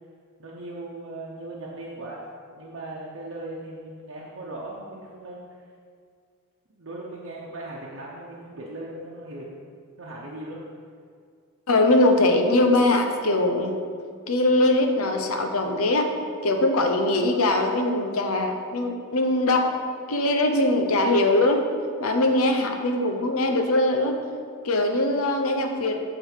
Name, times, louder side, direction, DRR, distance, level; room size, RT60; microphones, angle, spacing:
voice 1, 0.4-2.2 2.6-5.5 6.7-9.6 10.0-10.6, right 2 dB, 60° right, -5 dB, 0.9 m, -38 dB
voice 2, 11.7-13.8 14.3-16.1 16.4-19.7 20.1-21.6 22.0-24.2 24.6-26.0, left 2 dB, 85° left, 4 dB, 0.8 m, -21 dB
8.0 x 3.9 x 6.5 m, 2.1 s
head